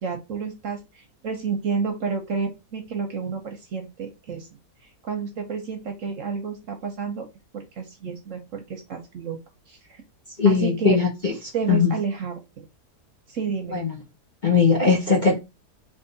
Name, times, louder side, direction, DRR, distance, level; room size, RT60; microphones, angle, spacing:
voice 1, 0.0-4.5 5.0-7.2 7.5-9.4 9.7-10.0 10.4-11.0 11.5-12.7 13.3-13.8, right 5 dB, 60° right, 1.0 m, -30 dB
voice 2, 10.4-11.3 11.7-11.9 13.7-14.0 14.4-15.4, left 5 dB, 35° left, 0.9 m, -19 dB
3.7 x 2.8 x 3.9 m
omnidirectional pair, 1.8 m